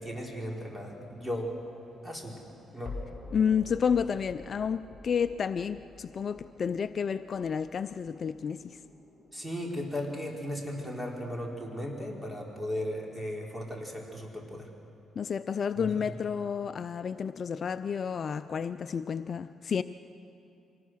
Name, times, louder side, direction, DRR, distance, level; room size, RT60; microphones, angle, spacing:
voice 1, 0.0-1.5 2.0-2.4 2.7-2.9 9.3-14.7 15.8-16.2, equal, 10° right, -1 dB, 4.2 m, -36 dB
sound 1, 1.0-12.0, left 3 dB, 20° left, 4.3 m, -49 dB
voice 2, 3.3-8.8 15.2-19.8, left 7 dB, 50° left, 12 dB, 0.5 m, -30 dB
25.5 x 19.0 x 6.3 m, 2.6 s
cardioid pair, 90°, 0 cm